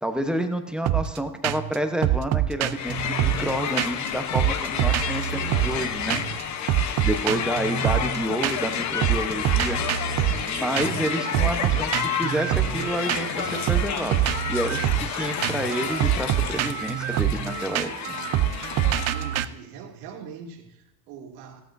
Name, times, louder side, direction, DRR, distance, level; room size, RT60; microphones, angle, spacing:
voice 1, 0.0-6.2 7.0-9.8 10.5-14.2 14.5-17.9, right 1 dB, ahead, 0.9 m, -29 dB
sound 1, 0.9-1.2 1.4-1.8 2.0-4.1 4.3-5.8 6.1-6.4 6.7-8.7 9.0-19.4, right 13 dB, 35° right, 0.5 m, -26 dB
Crowd, 2.7-19.4, left 8 dB, 40° left, 1.0 m, -30 dB
voice 2, 18.8-21.6, right 7 dB, 80° right, 2.8 m, -42 dB
15.5 x 12.5 x 2.7 m
supercardioid pair, 120°, 45 cm